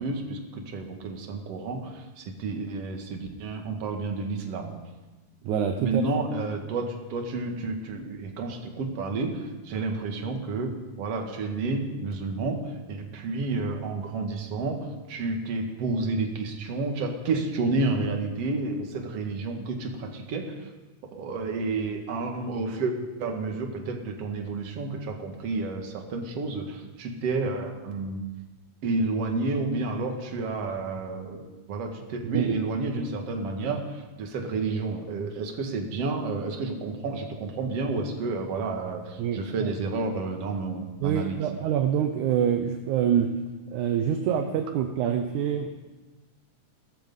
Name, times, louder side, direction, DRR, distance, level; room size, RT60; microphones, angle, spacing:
voice 1, 0.0-4.7 5.8-20.7 21.1-28.3 28.8-41.4, right 3 dB, 55° right, 3 dB, 2.5 m, -30 dB
voice 2, 5.4-6.0 32.3-32.6 39.2-39.7 41.0-43.3 43.7-45.7, right 8 dB, 75° right, 6 dB, 2.2 m, -26 dB
17.0 x 13.5 x 5.4 m, 1.2 s
omnidirectional pair, 3.8 m